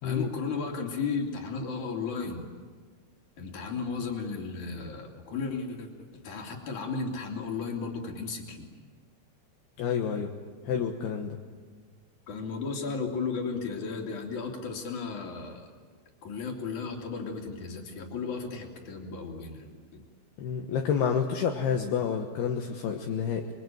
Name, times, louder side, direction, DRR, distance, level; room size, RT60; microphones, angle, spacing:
voice 1, 0.0-2.5 3.4-5.9 6.2-8.7 12.3-15.6 16.2-20.0, left 4 dB, 45° left, 1 dB, 4.2 m, -34 dB
voice 2, 9.8-10.3 10.7-11.4 20.4-23.5, left 7 dB, 70° left, 2 dB, 3.2 m, -29 dB
27.0 x 23.0 x 9.2 m, 1.5 s
omnidirectional pair, 5.0 m